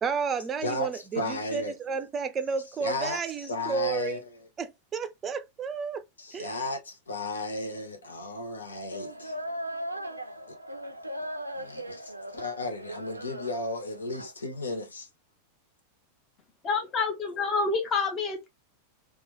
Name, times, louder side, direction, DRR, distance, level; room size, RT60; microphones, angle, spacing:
voice 1, 0.0-4.2 4.6-6.0 6.3-6.5, right 5 dB, 25° right, 0.4 m, -32 dB
voice 2, 0.6-1.8 2.8-4.5 6.2-9.4 11.5-15.1, left 2 dB, 75° left, 0.5 m, -34 dB
sound 1, 8.9-14.3, equal, 85° right, 0.4 m, -38 dB
voice 3, 16.6-18.5, left 4 dB, 30° left, 0.8 m, -28 dB
3.0 x 2.3 x 3.0 m
figure-of-eight pair, 90°, 0 cm